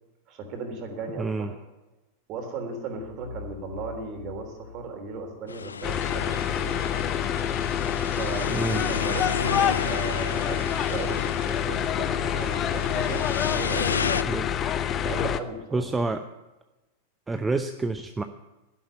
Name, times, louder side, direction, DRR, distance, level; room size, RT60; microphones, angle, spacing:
voice 1, 0.3-1.6 2.3-6.9 8.1-14.3 14.9-15.9, right 3 dB, 40° right, 4 dB, 3.5 m, -36 dB
voice 2, 1.2-1.5 8.5-8.8 14.2-14.5 15.7-16.2 17.3-18.2, right 3 dB, 10° right, 8 dB, 0.7 m, -28 dB
sound 1, 2.9-5.7, left 5 dB, 70° right, 5.1 m, -44 dB
sound 2, 5.5-14.2, left 6 dB, 70° left, 0.4 m, -33 dB
sound 3, 5.8-15.4, left 9 dB, 30° left, 0.8 m, -27 dB
12.5 x 11.0 x 8.5 m, 1.0 s
figure-of-eight pair, 90°, 0 cm